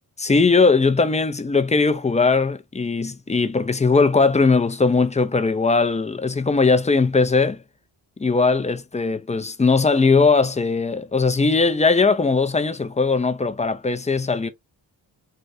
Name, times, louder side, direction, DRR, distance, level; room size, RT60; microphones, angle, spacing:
voice 1, 0.2-7.6 8.2-14.5, left 4 dB, 15° left, 0.4 m, -19 dB
3.3 x 2.6 x 2.6 m
cardioid pair, 55°, 46 cm